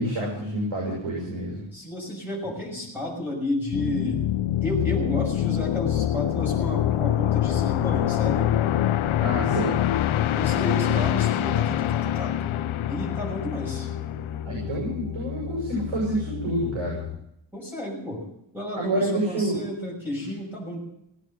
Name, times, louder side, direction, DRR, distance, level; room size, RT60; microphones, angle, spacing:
voice 1, 0.0-1.6 9.2-9.8 14.4-17.0 18.8-19.6, right 1 dB, 80° right, -3 dB, 7.4 m, -28 dB
voice 2, 1.7-4.2 4.6-8.5 10.4-12.4 12.9-13.9 17.5-18.2 18.5-20.8, left 1 dB, 5° right, -5 dB, 6.3 m, -32 dB
sound 1, 3.7-14.5, left 12 dB, 90° left, 0.7 m, -25 dB
sound 2, 6.6-17.2, left 9 dB, 50° left, 1.8 m, -35 dB
18.5 x 9.2 x 8.1 m, 0.77 s
wide cardioid pair, 175°, 47 cm